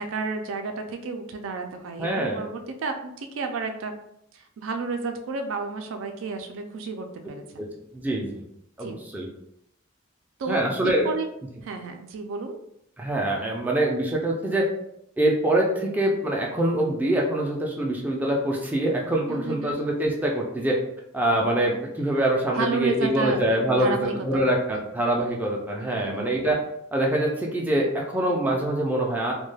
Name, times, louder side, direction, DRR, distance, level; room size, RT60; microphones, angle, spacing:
voice 1, 0.0-3.9 4.3-7.7 8.8-9.0 10.4-11.3 11.6-12.6 19.3-19.8 22.5-24.4 24.7-24.8 25.8-26.3, right 4 dB, 80° right, 5 dB, 0.4 m, -32 dB
voice 2, 2.0-2.4 7.6-7.7 7.9-8.4 8.8-9.3 10.5-11.1 13.0-14.7 15.2-20.8 21.1-26.6 26.9-29.3, right 1 dB, 10° right, -1 dB, 0.4 m, -24 dB
2.3 x 2.2 x 3.2 m, 0.76 s
head